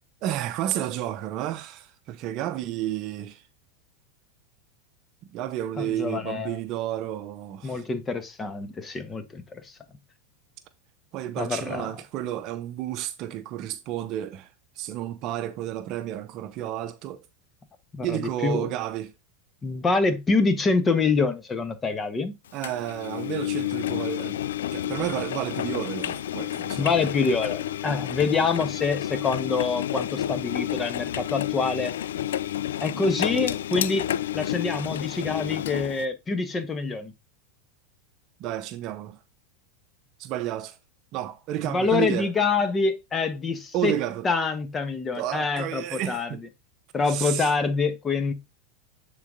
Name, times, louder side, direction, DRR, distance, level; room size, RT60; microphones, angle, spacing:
voice 1, 0.2-3.4 5.3-7.8 11.1-14.5 14.8-17.2 18.0-19.1 22.5-24.4 24.7-26.9 38.4-39.2 40.2-40.8 41.1-42.3 43.7-44.3 45.2-46.4 47.0-47.5, right 12 dB, 50° right, 0.7 m, -31 dB
voice 2, 5.8-6.6 7.6-9.8 11.4-11.9 17.9-18.7 19.6-22.3 26.8-31.9 32.8-34.1 34.3-37.1 41.6-44.0 44.2-46.4 46.9-48.3, left 4 dB, 20° left, 1.3 m, -26 dB
Engine, 22.6-36.1, left 12 dB, 75° left, 0.3 m, -30 dB
9.0 x 4.1 x 3.8 m
hypercardioid pair, 95°, 0 cm